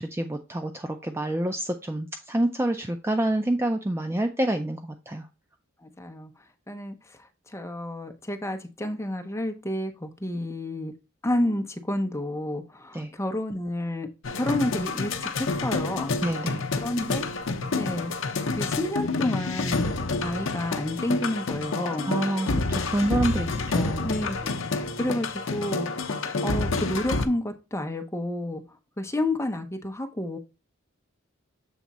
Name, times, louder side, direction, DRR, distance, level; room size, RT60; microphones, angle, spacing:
voice 1, 0.0-5.3 12.9-13.1 16.2-16.6 22.0-24.1, right 1 dB, 10° right, 6 dB, 0.4 m, -27 dB
voice 2, 5.8-6.3 6.7-7.0 7.5-10.9 11.2-14.1 14.3-16.2 16.8-17.3 17.8-18.1 18.6-19.9 20.2-22.1 24.0-26.2 26.4-28.6 29.0-30.4, left 1 dB, 15° left, 6 dB, 0.7 m, -30 dB
sound 1, 14.2-27.3, left 3 dB, 65° left, 0.7 m, -28 dB
7.2 x 3.4 x 4.1 m, 0.28 s
head